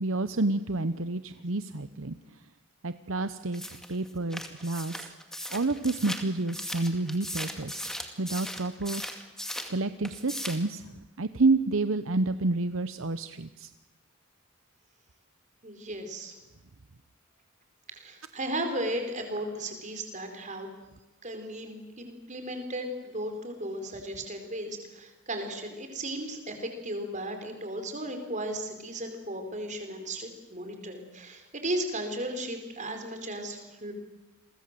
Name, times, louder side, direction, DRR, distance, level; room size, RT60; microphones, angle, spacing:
voice 1, 0.0-2.2 2.8-3.6 3.9-5.1 5.5-7.8 8.2-9.0 9.7-10.8 11.2-13.7, right 3 dB, 60° right, 11 dB, 0.9 m, -29 dB
sound 1, 3.5-9.8 10.0-10.7, equal, ahead, 2.3 m, -38 dB
voice 2, 15.6-16.4 17.9-20.7 21.2-33.9, right 1 dB, 35° right, 5 dB, 4.6 m, -35 dB
30.0 x 23.0 x 7.7 m, 1.0 s
head